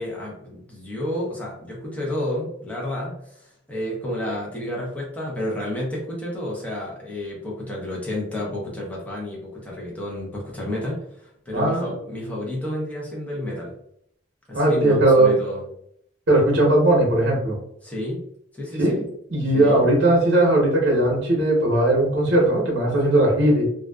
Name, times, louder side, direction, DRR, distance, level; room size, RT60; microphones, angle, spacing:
voice 1, 0.0-13.7 14.5-15.7 17.8-18.2 18.5-19.1 19.5-19.8, left 1 dB, 10° left, -5 dB, 0.7 m, -30 dB
voice 2, 11.5-11.9 14.5-15.3 16.3-17.6 18.8-23.7, right 1 dB, 65° right, -2 dB, 0.8 m, -18 dB
2.5 x 2.3 x 2.2 m, 0.72 s
head